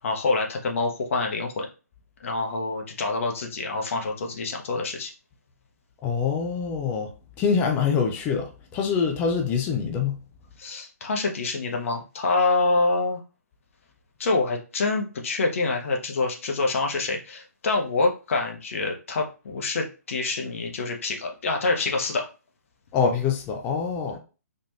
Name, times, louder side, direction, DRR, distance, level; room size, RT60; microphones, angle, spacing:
voice 1, 0.0-1.7 2.2-5.1 10.6-13.2 14.2-22.3 24.1-24.2, left 3 dB, 55° left, 1.1 m, -26 dB
voice 2, 6.0-7.1 7.4-10.2 22.9-24.2, left 6 dB, 20° left, 0.6 m, -25 dB
4.2 x 2.5 x 3.1 m
figure-of-eight pair, 135°, 9 cm